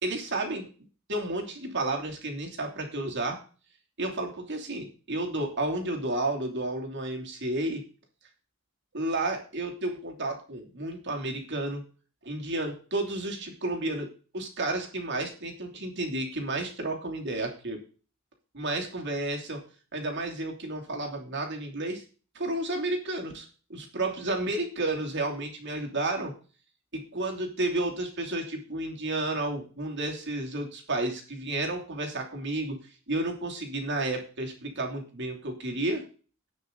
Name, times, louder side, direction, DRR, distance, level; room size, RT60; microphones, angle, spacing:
voice 1, 0.0-0.7 1.1-3.4 4.0-7.8 8.9-11.8 12.2-14.1 14.3-17.8 18.5-19.6 19.9-22.0 22.3-26.3 26.9-32.8 33.1-36.0, right 2 dB, 60° right, 1 dB, 3.0 m, -31 dB
17.5 x 6.2 x 3.9 m, 0.37 s
head